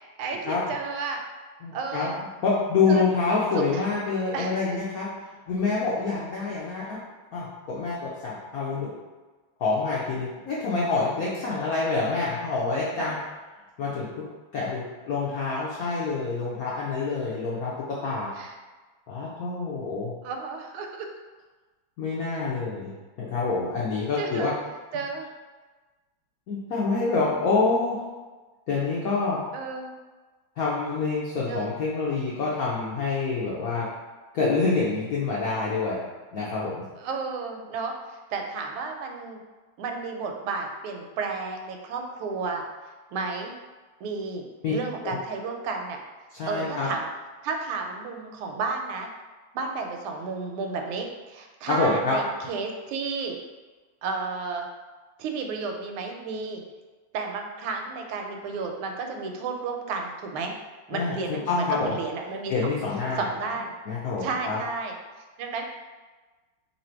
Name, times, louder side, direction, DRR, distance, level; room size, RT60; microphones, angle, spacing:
voice 1, 0.2-1.2 1.7-2.2 2.9-3.0 3.5-3.9 4.3-4.5 12.8-13.1 18.4-18.5 20.2-21.1 24.2-24.5 24.9-25.3 29.5-29.9 31.5-31.7 37.0-39.4 39.8-42.6 43.1-43.5 44.0-46.0 46.5-47.1 47.4-49.1 49.5-53.4 54.0-54.7 55.2-56.6 57.1-60.5 60.9-62.7 63.2-63.7 64.2-64.9 65.4-65.6, right 4 dB, 85° right, 3 dB, 1.5 m, -32 dB
voice 2, 1.6-2.1 2.4-5.1 5.5-7.0 7.3-9.0 9.6-13.2 13.8-14.3 14.5-18.3 19.1-20.1 22.0-22.9 23.2-24.5 26.5-28.0 28.7-29.4 30.6-33.9 34.3-36.0 36.3-36.8 44.6-44.7 45.0-45.2 46.3-46.9 51.7-52.2 60.9-61.9 62.5-63.3 63.9-64.6, left 4 dB, 80° left, -6 dB, 0.8 m, -27 dB
3.3 x 2.7 x 4.4 m, 1.3 s
omnidirectional pair, 2.3 m